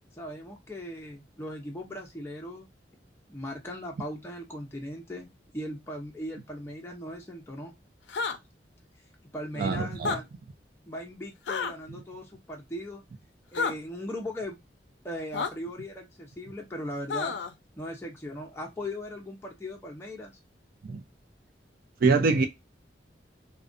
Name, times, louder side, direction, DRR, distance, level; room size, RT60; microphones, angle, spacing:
voice 1, 0.1-2.7 3.3-7.7 9.3-10.3 10.9-13.0 13.5-14.6 15.0-17.4 17.8-20.3, left 1 dB, 15° left, 0.5 m, -38 dB
sound 1, 8.1-8.4 9.9-10.2 11.5-11.7 13.5-13.7 15.3-15.5 17.1-17.5, left 5 dB, 75° left, 0.4 m, -29 dB
voice 2, 9.6-10.1 20.8-21.0 22.0-22.5, right 4 dB, 55° right, 0.4 m, -24 dB
2.5 x 2.2 x 2.4 m
head